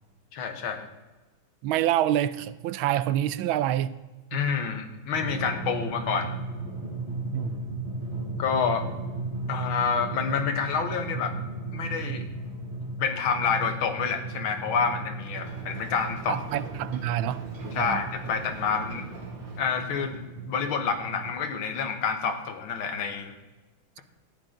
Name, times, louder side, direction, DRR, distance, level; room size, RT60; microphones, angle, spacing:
voice 1, 0.3-0.9 4.3-6.3 8.4-8.8 9.5-11.3 11.7-12.3 13.0-16.4 17.7-19.1 19.6-20.2 20.5-23.3, left 6 dB, 85° left, 2.0 m, -28 dB
voice 2, 1.6-4.0 4.3-4.4 7.3-7.6 16.3-17.5 17.7-18.0, right 12 dB, 80° right, 1.4 m, -27 dB
Drum, 5.1-21.3, right 2 dB, 15° right, 2.5 m, -36 dB
Ocean, 15.4-20.3, right 2 dB, 65° right, 2.7 m, -44 dB
14.0 x 9.8 x 3.8 m
omnidirectional pair, 2.2 m